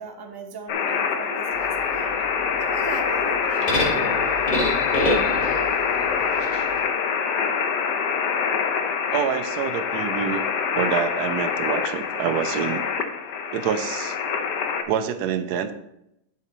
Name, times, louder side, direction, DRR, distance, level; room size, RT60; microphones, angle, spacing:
voice 1, 0.0-2.2 2.6-4.2, right 4 dB, 20° right, 3 dB, 0.7 m, -38 dB
sound 1, 0.7-14.8, left 6 dB, 75° left, 1.4 m, -25 dB
sound 2, 1.5-6.8, left 1 dB, 25° left, 1.5 m, -28 dB
voice 2, 9.1-10.4 10.7-12.9 13.5-14.2 14.9-15.7, right 8 dB, 75° right, 10 dB, 1.1 m, -26 dB
11.0 x 6.6 x 3.1 m, 0.83 s
omnidirectional pair, 1.8 m